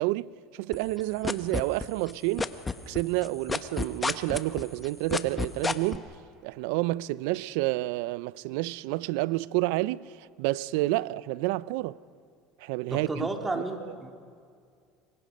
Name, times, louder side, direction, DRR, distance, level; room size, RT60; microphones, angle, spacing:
voice 1, 0.0-2.5 2.9-6.1 6.4-12.0 12.6-13.3 13.5-13.6, right 19 dB, 75° right, 0.5 m, -29 dB
sound 1, 0.7-2.1 2.4-6.0, left 4 dB, 20° left, 1.2 m, -29 dB
voice 2, 12.9-14.1, right 2 dB, 20° right, 3.5 m, -32 dB
26.5 x 24.0 x 5.4 m
hypercardioid pair, 85°, 0 cm